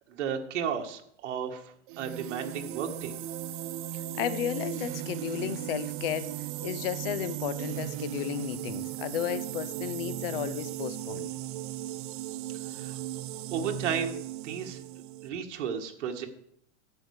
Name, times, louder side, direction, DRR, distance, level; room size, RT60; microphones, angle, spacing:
voice 1, 0.2-1.6 2.0-3.1 12.7-13.0 13.5-14.2 14.4-14.8 15.2-16.3, right 7 dB, 85° right, 3 dB, 2.0 m, -33 dB
sound 1, 1.9-15.3, right 13 dB, 45° right, 0.5 m, -37 dB
voice 2, 3.9-11.3, left 11 dB, 55° left, 14 dB, 0.9 m, -34 dB
12.0 x 8.4 x 4.9 m, 0.71 s
supercardioid pair, 170°, 35 cm